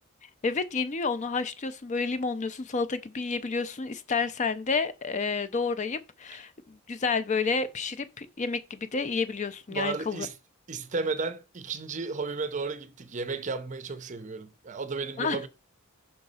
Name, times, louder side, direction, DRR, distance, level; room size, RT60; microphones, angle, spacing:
voice 1, 0.4-10.3 15.2-15.5, left 4 dB, 35° left, 0.4 m, -30 dB
voice 2, 9.7-10.3 10.7-15.5, right 4 dB, 35° right, 0.5 m, -33 dB
5.6 x 3.9 x 5.4 m
head